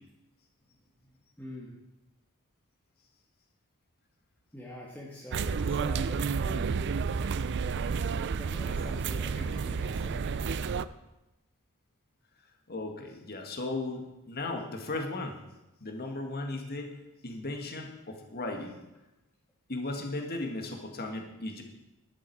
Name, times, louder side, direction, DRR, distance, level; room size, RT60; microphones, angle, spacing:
voice 1, 1.0-1.8 4.5-6.9 8.4-10.5, left 1 dB, 10° left, -5 dB, 1.7 m, -45 dB
sound 1, 5.3-10.8, right 5 dB, 55° right, 0.4 m, -31 dB
voice 2, 12.7-15.4 15.8-17.0 17.2-18.8 19.7-21.6, left 2 dB, 45° left, 3 dB, 1.8 m, -36 dB
12.5 x 11.0 x 4.7 m, 0.97 s
head